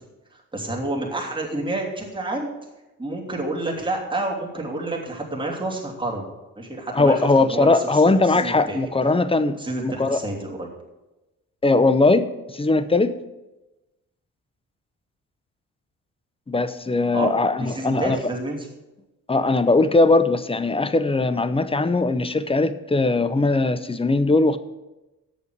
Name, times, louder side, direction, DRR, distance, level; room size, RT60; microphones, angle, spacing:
voice 1, 0.5-2.5 3.0-6.2 6.6-8.8 9.6-10.7 17.1-18.7, right 2 dB, 15° right, -2 dB, 2.8 m, -29 dB
voice 2, 6.9-10.2 11.6-13.1 16.5-18.2 19.3-24.6, left 3 dB, 15° left, 13 dB, 0.7 m, -20 dB
8.3 x 6.9 x 8.1 m, 1.0 s
cardioid pair, 85°, 34 cm